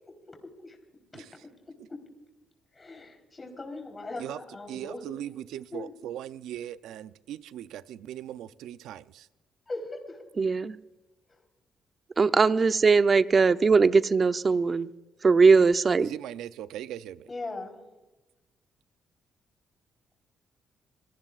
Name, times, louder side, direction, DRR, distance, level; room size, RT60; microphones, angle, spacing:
voice 1, 0.1-0.8 1.1-1.2 1.9-2.0 2.7-5.0 5.7-5.9 9.7-10.2 17.3-17.8, left 2 dB, 25° left, 3 dB, 3.9 m, -39 dB
voice 2, 4.7-9.3 16.0-17.3, right 11 dB, 85° right, 14 dB, 0.5 m, -39 dB
voice 3, 10.4-10.8 12.2-14.9 15.2-16.1, right 4 dB, 35° right, 12 dB, 0.6 m, -20 dB
27.0 x 18.0 x 2.5 m, 1.1 s
cardioid pair, 90°, 0 cm